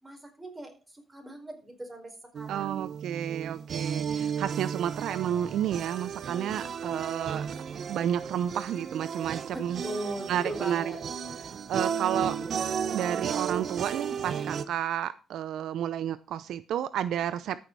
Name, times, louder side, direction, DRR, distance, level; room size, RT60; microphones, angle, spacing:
voice 1, 0.0-2.8 9.5-11.0, right 1 dB, 15° right, 4 dB, 4.7 m, -39 dB
sound 1, 2.4-14.7, right 7 dB, 55° right, 1.0 m, -34 dB
voice 2, 2.5-7.5 7.9-9.8 10.3-10.8 11.7-12.4 12.9-17.6, right 10 dB, 75° right, 15 dB, 0.6 m, -31 dB
13.5 x 6.9 x 4.7 m, 0.32 s
cardioid pair, 90°, 0 cm